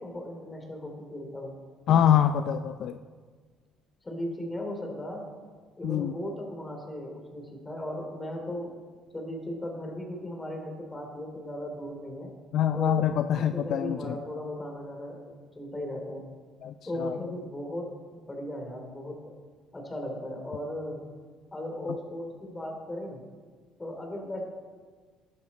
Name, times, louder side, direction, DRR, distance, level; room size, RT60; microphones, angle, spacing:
voice 1, 0.0-1.6 4.0-5.3 5.8-8.8 9.1-12.3 12.7-16.3 16.8-19.3 19.7-21.1 21.5-23.2 23.8-24.4, left 1 dB, 15° left, 2 dB, 3.0 m, -37 dB
voice 2, 1.9-3.0 5.8-6.1 12.5-14.2 16.6-17.2, left 9 dB, 60° left, 9 dB, 0.4 m, -25 dB
13.0 x 11.0 x 4.2 m, 1.5 s
cardioid pair, 100°, 0 cm